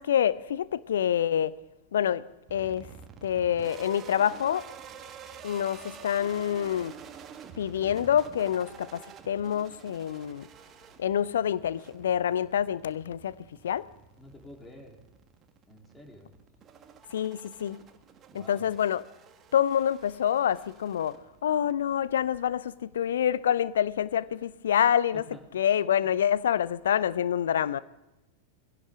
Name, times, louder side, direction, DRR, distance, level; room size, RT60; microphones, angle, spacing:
voice 1, 0.0-1.6 1.9-2.2 2.5-2.9 3.2-4.7 5.4-6.9 7.6-10.5 11.0-13.3 13.6-13.9 17.1-17.8 18.3-19.0 19.5-25.2 25.5-27.8, left 9 dB, 65° left, 0.6 m, -27 dB
sound 1, 2.5-21.7, right 7 dB, 30° right, 1.6 m, -49 dB
voice 2, 14.2-15.0 15.7-16.3 18.3-18.7 25.1-25.4, left 1 dB, 10° left, 3.6 m, -49 dB
21.5 x 16.5 x 3.7 m
figure-of-eight pair, 90°, 0 cm